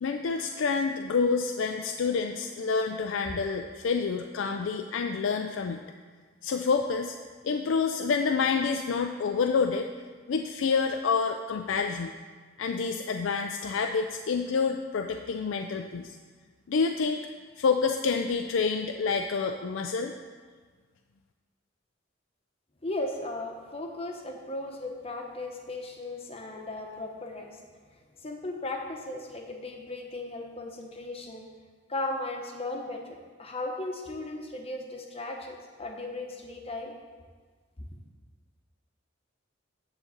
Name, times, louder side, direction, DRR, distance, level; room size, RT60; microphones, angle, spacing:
voice 1, 0.0-5.8 6.4-7.2 7.4-9.9 10.3-12.1 12.6-16.2 16.7-17.3 17.6-20.1, left 5 dB, 85° left, 5 dB, 0.4 m, -28 dB
voice 2, 22.8-27.5 28.2-31.5 31.9-36.9, left 2 dB, 30° left, 2 dB, 1.0 m, -36 dB
9.9 x 3.9 x 7.2 m, 1.5 s
head